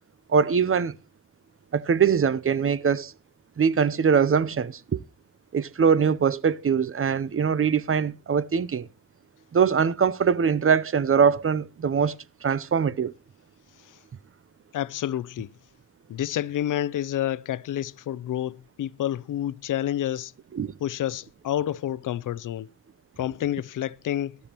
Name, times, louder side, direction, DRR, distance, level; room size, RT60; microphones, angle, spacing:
voice 1, 0.3-0.9 1.7-3.1 3.6-5.0 5.5-8.9 9.5-12.2 12.4-13.1 20.5-20.7, right 6 dB, 45° right, 0.7 m, -22 dB
voice 2, 14.7-15.5 16.1-20.3 20.8-22.7 23.2-24.4, left 12 dB, 80° left, 0.5 m, -29 dB
13.5 x 13.0 x 3.0 m
cardioid pair, 65°, 31 cm